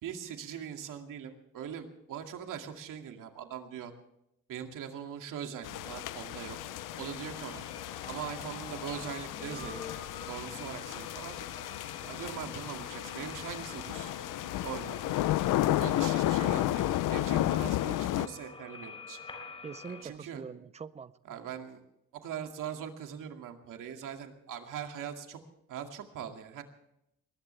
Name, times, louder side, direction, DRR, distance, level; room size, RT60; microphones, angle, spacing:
voice 1, 0.0-3.9 4.5-6.6 7.0-7.7 8.1-9.8 10.1-11.4 12.0-14.1 14.6-15.2 15.8-19.2 20.0-20.4 21.3-21.8 22.2-25.4 25.7-26.6, right 8 dB, 85° right, 4 dB, 2.3 m, -41 dB
sound 1, 5.6-18.3, left 15 dB, 90° left, 0.6 m, -33 dB
sound 2, 5.8-20.0, left 3 dB, 20° left, 3.8 m, -48 dB
voice 2, 19.6-21.4, right 5 dB, 20° right, 16 dB, 0.5 m, -44 dB
21.0 x 20.0 x 3.3 m, 0.81 s
cardioid pair, 180°, 31 cm